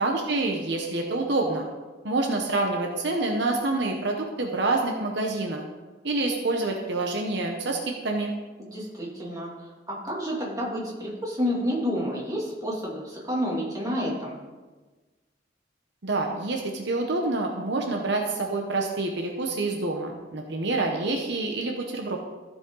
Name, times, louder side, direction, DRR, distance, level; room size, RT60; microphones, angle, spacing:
voice 1, 0.0-1.7 2.0-5.6 6.0-7.8 8.0-8.3 16.0-22.2, right 2 dB, 65° right, 1 dB, 1.0 m, -27 dB
voice 2, 8.6-14.4, equal, 20° right, -4 dB, 2.5 m, -30 dB
15.0 x 5.3 x 3.8 m, 1.3 s
head